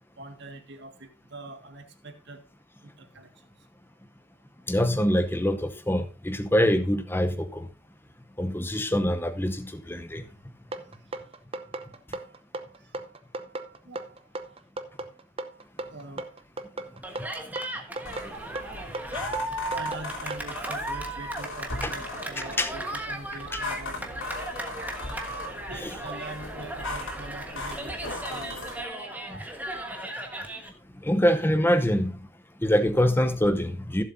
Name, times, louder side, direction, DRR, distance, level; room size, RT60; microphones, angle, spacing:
voice 1, 0.2-2.4 2.8-3.3 11.9-12.0 12.8-13.0 13.8-14.3 15.9-16.3 17.9-18.0 19.7-24.3 25.7-28.8 29.3-29.5, right 2 dB, 50° right, 1.8 m, -43 dB
voice 2, 4.7-7.7 8.4-10.2 21.8-21.9 22.6-22.7 25.8-25.9 29.3-29.4 31.0-32.2 32.6-34.0, equal, 10° left, 0.7 m, -24 dB
sound 1, 10.7-20.5, right 2 dB, 25° right, 0.7 m, -36 dB
Cheering, 17.0-30.7, right 1 dB, 10° right, 1.3 m, -36 dB
sound 2, 18.0-28.8, left 2 dB, 65° left, 3.1 m, -39 dB
16.0 x 7.5 x 2.7 m
head